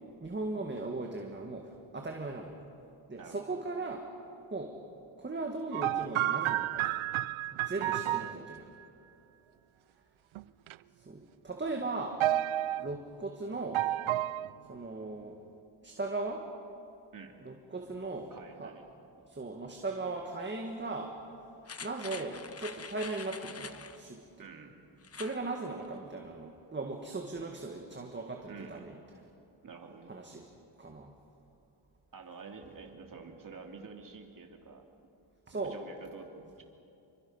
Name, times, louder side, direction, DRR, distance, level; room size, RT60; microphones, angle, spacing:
voice 1, 0.2-2.6 3.1-4.0 4.5-4.8 5.2-6.9 7.5-8.7 11.0-12.2 12.8-13.8 14.6-15.4 15.8-16.4 17.4-18.3 18.6-18.7 19.2-21.1 21.8-24.2 25.1-29.0 30.1-30.5 30.8-31.1 35.5-35.8, right 3 dB, 20° right, 2 dB, 1.9 m, -38 dB
voice 2, 3.2-3.6 7.8-8.4 17.1-17.3 18.3-18.8 24.4-24.8 28.5-28.8 29.6-30.1 32.1-34.8 35.6-36.6, right 5 dB, 40° right, 3 dB, 2.9 m, -48 dB
sound 1, 5.7-8.6 10.3-10.7 12.2-12.9 13.7-14.5, right 13 dB, 75° right, 0.6 m, -31 dB
sound 2, 21.7-24.0 25.0-25.4 25.8-25.9, left 5 dB, 30° left, 1.0 m, -45 dB
28.0 x 24.0 x 5.7 m, 2.7 s
cardioid pair, 115°, 48 cm